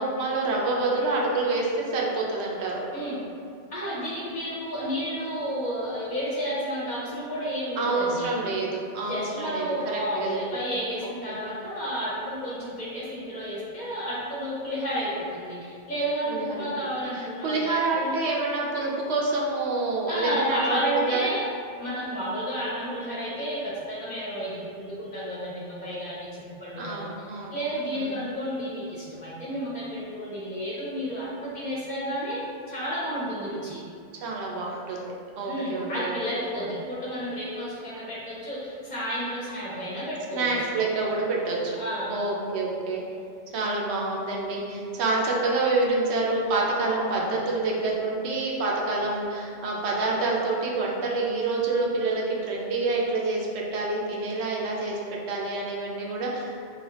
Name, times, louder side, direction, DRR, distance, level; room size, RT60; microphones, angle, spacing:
voice 1, 0.0-2.8 7.8-10.4 11.3-11.4 16.3-16.7 17.2-20.6 21.1-21.2 26.8-27.6 27.9-28.2 34.2-36.1 40.3-41.8 42.1-43.0 43.5-55.0 55.3-56.7, right 3 dB, 90° right, -2 dB, 0.9 m, -27 dB
voice 2, 3.7-8.4 9.1-18.2 20.1-21.5 21.8-32.4 32.7-33.8 35.5-40.5 41.8-42.2, equal, 50° left, -7 dB, 0.7 m, -31 dB
3.2 x 2.2 x 2.9 m, 2.4 s
omnidirectional pair, 1.1 m